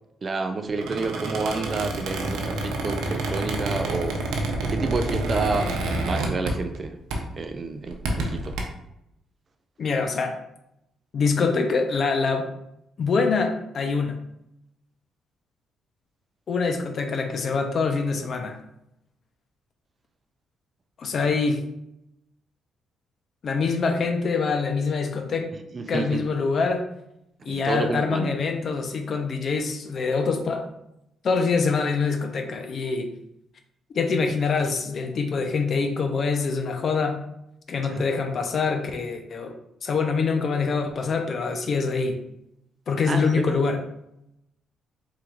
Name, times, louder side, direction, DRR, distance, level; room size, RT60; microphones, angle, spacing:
voice 1, 0.2-4.2 4.6-7.0 7.4-8.6 25.7-26.2 27.5-28.3 37.9-38.1 43.1-43.6, right 3 dB, 35° right, 7 dB, 0.4 m, -29 dB
Squeak, 0.7-6.8 7.1-7.4 7.9-8.6, right 2 dB, 90° right, 0.7 m, -28 dB
voice 2, 9.8-10.4 11.1-12.5 13.0-14.2 16.5-18.6 21.0-21.6 23.4-25.5 25.9-26.9 27.4-30.7 31.2-33.1 33.9-37.2 37.7-42.2 42.9-43.8, left 4 dB, 50° left, 5 dB, 0.6 m, -25 dB
4.4 x 3.8 x 2.5 m, 0.81 s
cardioid pair, 90°, 0 cm